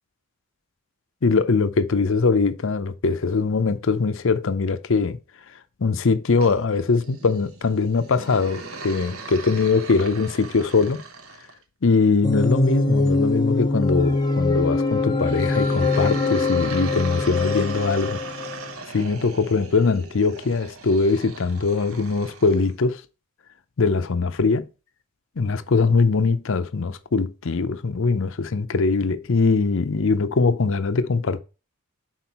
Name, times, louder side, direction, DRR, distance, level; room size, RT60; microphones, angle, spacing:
voice 1, 1.2-5.2 5.5-11.0 11.8-18.2 18.9-23.0 23.8-24.7 25.4-31.4, left 4 dB, 60° left, 0.6 m, -22 dB
sound 1, 6.4-11.6 15.2-22.7, right 3 dB, 70° right, 1.0 m, -38 dB
sound 2, 12.2-18.8, left 3 dB, 20° left, 0.8 m, -23 dB
6.1 x 4.4 x 4.1 m
head